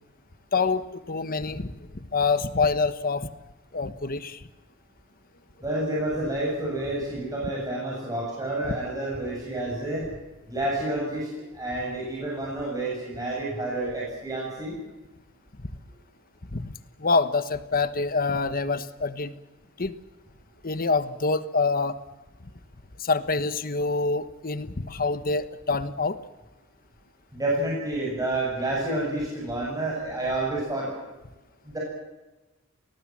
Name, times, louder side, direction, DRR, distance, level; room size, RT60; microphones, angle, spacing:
voice 1, 0.5-1.7 2.1-3.3 3.7-4.4 16.5-16.7 17.0-19.4 19.8-19.9 20.6-22.0 23.0-26.2, left 4 dB, 45° left, 12 dB, 1.2 m, -26 dB
voice 2, 5.6-10.1 10.5-14.8 27.3-30.9 31.6-31.8, right 1 dB, 15° right, -4 dB, 7.5 m, -29 dB
29.0 x 19.0 x 7.5 m, 1.1 s
head